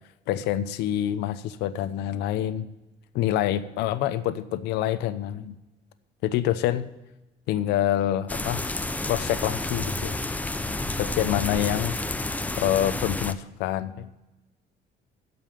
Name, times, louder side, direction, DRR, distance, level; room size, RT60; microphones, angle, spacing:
voice 1, 0.3-2.7 3.1-5.6 6.2-6.9 7.5-8.7 9.0-10.2 11.0-12.0 12.6-14.1, left 12 dB, 90° left, 13 dB, 0.8 m, -26 dB
sound 1, 8.3-13.3, left 2 dB, 10° left, 0.6 m, -30 dB
13.0 x 5.5 x 6.9 m, 1.0 s
cardioid pair, 110°, 17 cm